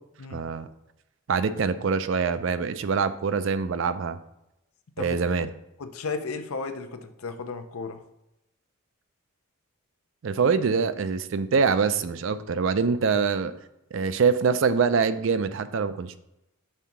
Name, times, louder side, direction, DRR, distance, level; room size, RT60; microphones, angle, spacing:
voice 1, 0.3-0.7 1.3-4.2 5.0-5.5 10.2-13.5 13.9-16.2, right 5 dB, 60° right, 12 dB, 0.4 m, -24 dB
voice 2, 5.8-8.0, left 4 dB, 85° left, 8 dB, 0.6 m, -34 dB
5.5 x 3.7 x 5.7 m, 0.88 s
head